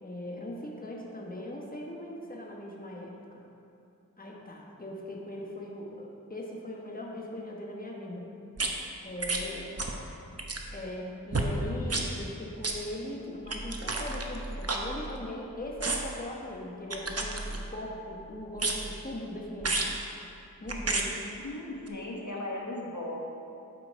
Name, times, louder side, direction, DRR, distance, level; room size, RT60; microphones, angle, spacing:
voice 1, 0.0-3.4 4.2-8.3 9.0-9.8 10.7-19.8 20.6-21.1, left 1 dB, 25° left, -2 dB, 1.3 m, -40 dB
sound 1, 8.6-8.7 9.2-9.5 9.8-10.0 10.3-10.7 11.3-11.5 11.9-12.1 12.6-12.8 13.5-15.4 15.8-16.2 16.9-17.9 18.6-19.0 19.6-20.0 20.7-21.1 21.9-22.0, right 2 dB, 45° right, 0.9 m, -32 dB
voice 2, 9.3-9.6 21.2-23.2, left 1 dB, 55° left, -3 dB, 1.3 m, -38 dB
11.5 x 5.1 x 4.7 m, 2.6 s
wide cardioid pair, 50°, 35 cm